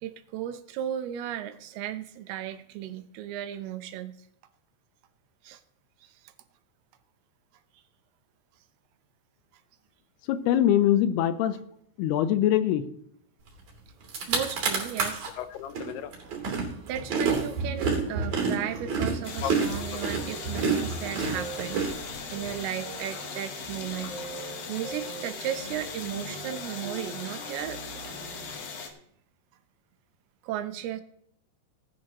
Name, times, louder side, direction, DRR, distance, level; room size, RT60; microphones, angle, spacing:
voice 1, 0.0-4.2 5.4-5.6 6.0-6.1 14.3-15.3 16.9-21.8 22.3-24.1 24.4-27.8 30.4-31.0, right 11 dB, 80° right, 10 dB, 2.7 m, -35 dB
voice 2, 10.3-11.6 12.0-12.8 15.4-16.1 19.4-19.5, left 11 dB, 85° left, 12 dB, 2.7 m, -24 dB
sound 1, 13.7-13.8 14.0-15.3 15.7-22.5, right 5 dB, 45° right, 4.0 m, -28 dB
sound 2, 17.9-28.5, right 2 dB, 20° right, 2.8 m, -43 dB
sound 3, 19.2-28.9, left 5 dB, 65° left, 3.0 m, -39 dB
18.5 x 11.0 x 3.0 m, 0.68 s
omnidirectional pair, 4.6 m